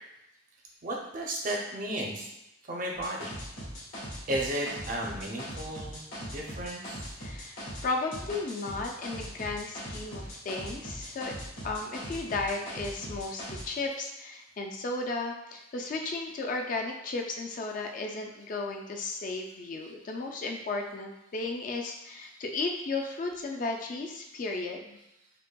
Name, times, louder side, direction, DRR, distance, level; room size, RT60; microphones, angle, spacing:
voice 1, 0.8-2.3 2.6-3.3 4.3-7.1 19.8-19.9 22.9-23.2, right 1 dB, 40° right, -1 dB, 0.6 m, -34 dB
sound 1, 2.9-7.9 8.1-13.6, equal, 85° left, 1.4 m, -40 dB
voice 2, 7.2-11.3 11.6-25.0, left 3 dB, 40° left, 2 dB, 0.3 m, -34 dB
5.1 x 2.2 x 2.2 m, 0.90 s
head